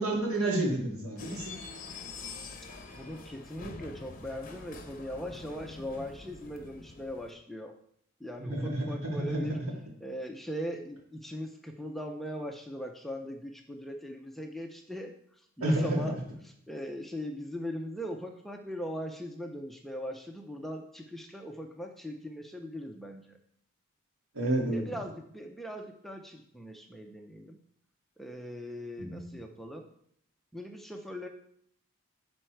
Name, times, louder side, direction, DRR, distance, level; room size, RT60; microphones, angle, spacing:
voice 1, 0.0-1.5 8.4-9.4 15.6-16.0 24.3-24.8 29.0-29.3, right 1 dB, 80° right, -2 dB, 2.5 m, -30 dB
sound 1, 1.2-7.3, left 3 dB, 40° left, 0.9 m, -45 dB
voice 2, 2.9-7.7 8.2-9.6 10.0-15.1 15.6-16.2 16.4-23.4 24.7-27.6 28.2-29.9 30.5-31.3, equal, ahead, 3 dB, 0.5 m, -40 dB
11.5 x 4.3 x 4.5 m, 0.69 s
head